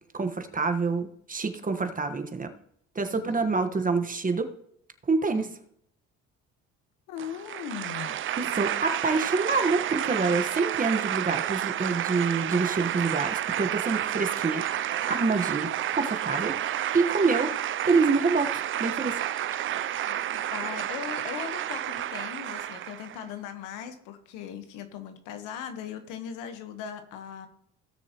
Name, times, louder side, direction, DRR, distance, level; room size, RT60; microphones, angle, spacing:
voice 1, 0.1-2.5 2.9-4.5 5.1-5.5 8.4-16.6 16.9-17.5 17.8-19.2, right 4 dB, 25° right, 7 dB, 1.3 m, -27 dB
voice 2, 3.1-3.5 5.3-5.5 7.1-8.2 19.9-27.5, left 8 dB, 85° left, 8 dB, 1.3 m, -39 dB
sound 1, 7.2-23.2, right 11 dB, 40° right, 0.4 m, -30 dB
17.0 x 6.5 x 3.0 m, 0.70 s
supercardioid pair, 75°, 31 cm